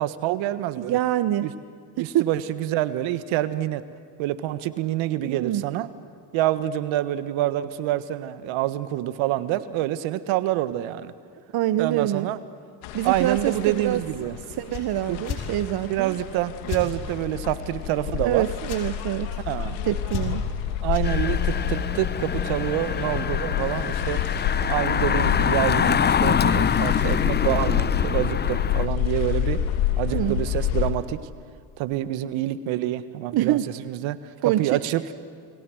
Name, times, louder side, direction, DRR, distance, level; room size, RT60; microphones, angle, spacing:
voice 1, 0.0-1.0 1.4-1.5 2.0-3.8 4.2-5.9 6.3-11.1 11.8-12.4 13.0-14.4 15.1-15.2 15.9-18.4 19.5-19.8 20.8-24.2 24.7-29.6 30.0-31.2 31.8-34.2 34.4-35.0, right 14 dB, 65° right, 13 dB, 1.6 m, -27 dB
voice 2, 0.8-1.5 2.0-2.3 5.2-5.6 11.5-12.3 12.9-14.0 14.6-16.1 18.2-19.4 19.8-20.5 30.1-30.4 33.3-33.7 34.4-34.7, right 13 dB, 50° right, 12 dB, 1.0 m, -25 dB
sound 1, 12.8-30.9, left 10 dB, 65° left, 2.4 m, -28 dB
sound 2, 14.7-14.9 15.2-15.4 16.7-16.9 18.6-18.8 20.1-20.5 20.9-21.1, left 8 dB, 50° left, 4.5 m, -31 dB
Engine, 21.0-28.9, left 7 dB, 20° left, 0.6 m, -25 dB
29.5 x 22.0 x 7.8 m, 2.1 s
hypercardioid pair, 75°, 50 cm